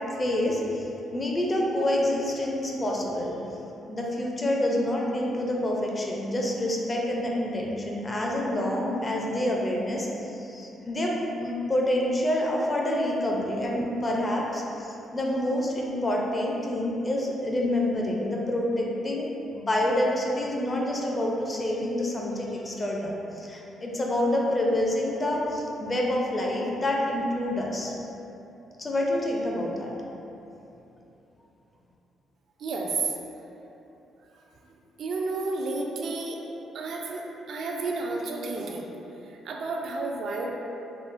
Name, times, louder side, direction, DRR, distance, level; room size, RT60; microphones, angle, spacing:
voice 1, 0.2-3.5 3.9-27.9 28.8-29.9, left 1 dB, 25° left, -2 dB, 0.4 m, -27 dB
voice 2, 32.6-33.2 35.0-36.4 36.7-38.9 39.3-40.5, right 3 dB, 65° right, 0 dB, 0.3 m, -31 dB
3.6 x 2.0 x 2.5 m, 3.0 s
cardioid pair, 90°, 0 cm